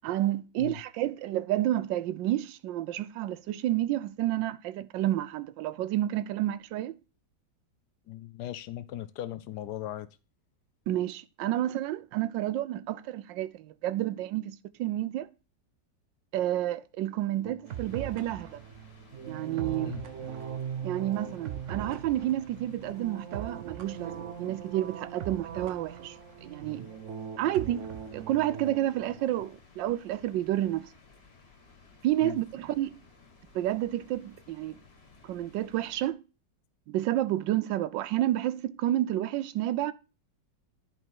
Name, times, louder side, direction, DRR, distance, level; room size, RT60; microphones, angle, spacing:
voice 1, 0.0-7.0 10.9-15.3 16.3-18.6 19.3-20.0 20.8-26.9 27.4-27.8 28.1-30.9 32.0-33.0 33.5-34.8 35.2-36.2 36.9-39.9, right 13 dB, 85° right, 1.3 m, -30 dB
voice 2, 8.1-10.1 19.8-20.0 32.2-32.4, left 13 dB, 70° left, 1.1 m, -38 dB
sound 1, 17.4-29.3, right 8 dB, 55° right, 0.9 m, -40 dB
sound 2, 17.6-36.1, left 4 dB, 35° left, 1.9 m, -57 dB
11.0 x 5.3 x 4.6 m
omnidirectional pair, 2.0 m